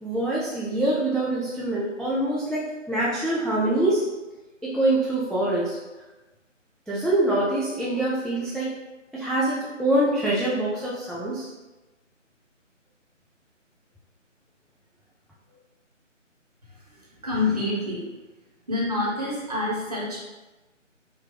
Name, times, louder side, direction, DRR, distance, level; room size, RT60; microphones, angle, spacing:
voice 1, 0.0-4.0 4.6-5.8 6.9-8.7 9.1-11.5, right 1 dB, ahead, -7 dB, 0.3 m, -25 dB
voice 2, 17.2-18.0 18.7-20.2, left 2 dB, 30° right, -6 dB, 0.9 m, -26 dB
4.5 x 2.3 x 3.3 m, 1.1 s
figure-of-eight pair, 155°, 38 cm